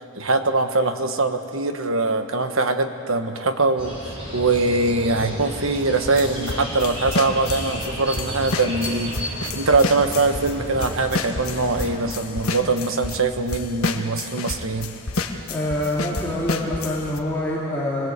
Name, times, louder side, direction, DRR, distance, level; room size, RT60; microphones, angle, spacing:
voice 1, 0.2-3.9 4.3-14.9, right 3 dB, 65° right, 7 dB, 1.3 m, -22 dB
sound 1, 3.8-12.1, equal, 25° right, 5.3 m, -33 dB
sound 2, 6.0-10.6 10.8-13.2 13.5-17.2, left 3 dB, 75° left, 1.5 m, -29 dB
voice 2, 15.5-18.1, left 1 dB, 10° left, -7 dB, 2.8 m, -25 dB
25.0 x 19.5 x 8.3 m, 3.0 s
head